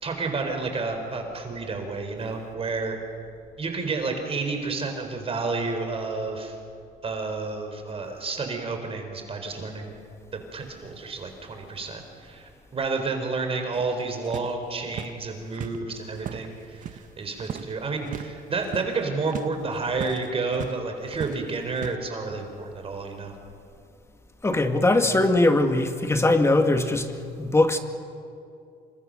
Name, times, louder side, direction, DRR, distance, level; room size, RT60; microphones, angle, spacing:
voice 1, 0.0-3.0 3.6-6.5 7.0-10.0 10.3-23.3, right 3 dB, 35° right, 4 dB, 4.3 m, -30 dB
sound 1, 13.7-17.1 17.4-17.7 18.0-18.3 18.6-20.8 21.1-21.9, right 9 dB, 50° right, 1.1 m, -38 dB
voice 2, 24.4-27.8, left 2 dB, 15° left, 6 dB, 2.2 m, -21 dB
28.0 x 25.0 x 6.5 m, 2.4 s
cardioid pair, 110°, 17 cm